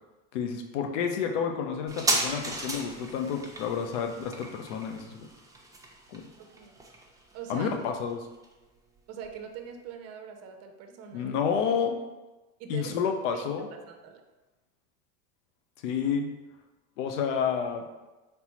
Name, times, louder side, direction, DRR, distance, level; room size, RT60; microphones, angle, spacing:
voice 1, 0.3-5.3 6.1-6.2 7.5-8.2 11.1-12.0 12.7-13.7 15.8-16.3 17.0-17.8, left 7 dB, 80° left, 4 dB, 0.7 m, -30 dB
sound 1, 1.9-9.0 9.2-9.3, right 2 dB, 10° right, 0.8 m, -35 dB
voice 2, 6.4-6.7 7.3-7.7 9.1-11.3 12.6-12.9 13.3-14.2, right 7 dB, 45° right, 5 dB, 0.6 m, -43 dB
4.2 x 3.4 x 2.9 m, 1.1 s
supercardioid pair, 90°, 35 cm